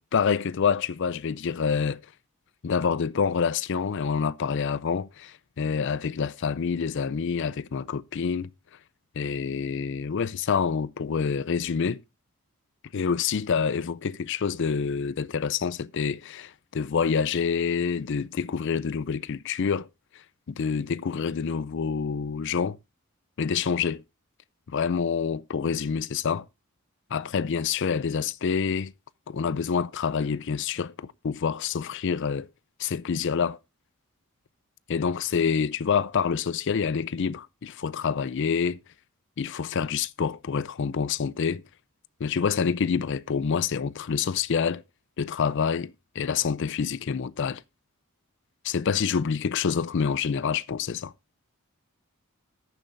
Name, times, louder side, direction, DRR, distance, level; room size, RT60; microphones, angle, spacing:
voice 1, 0.1-2.0 2.6-8.5 9.2-12.0 12.9-19.9 20.5-22.8 23.4-24.0 24.7-26.5 27.1-28.9 29.3-32.5 32.8-33.6 34.9-38.8 39.4-41.6 42.2-44.8 45.2-47.6 48.6-51.1, left 6 dB, 55° left, 0.4 m, -27 dB
18.0 x 7.0 x 2.6 m
head